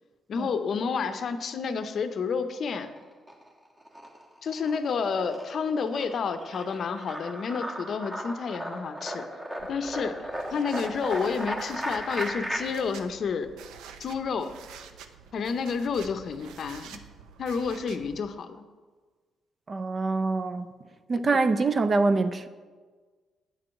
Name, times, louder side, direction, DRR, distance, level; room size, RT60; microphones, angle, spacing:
voice 1, 0.3-2.9 4.4-9.3 9.6-13.5 14.0-14.5 15.3-17.0 17.4-18.6, left 5 dB, 55° left, 0.6 m, -30 dB
sound 1, 2.7-3.5 3.8-12.6, equal, 20° right, 1.3 m, -36 dB
sound 2, 9.6-18.2, right 7 dB, 90° right, 0.5 m, -48 dB
voice 2, 19.7-20.7 21.1-22.5, right 3 dB, 35° right, 0.5 m, -25 dB
9.1 x 4.5 x 6.3 m
cardioid pair, 90°, 0 cm